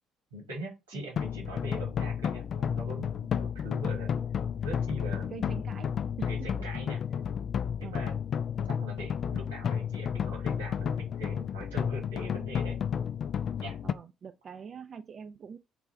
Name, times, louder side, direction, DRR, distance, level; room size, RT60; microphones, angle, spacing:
voice 1, 0.3-4.1 4.6-5.3 6.2-7.0 7.8-8.2 8.8-12.8 13.6-13.8, right 1 dB, 85° right, 1.6 m, -42 dB
sound 1, 1.2-13.9, left 8 dB, 50° left, 0.3 m, -32 dB
voice 2, 5.3-5.9 6.2-6.7 7.8-8.0 8.6-8.7 13.8-15.6, right 6 dB, 45° right, 0.4 m, -44 dB
4.0 x 2.3 x 4.4 m
figure-of-eight pair, 50°, 0 cm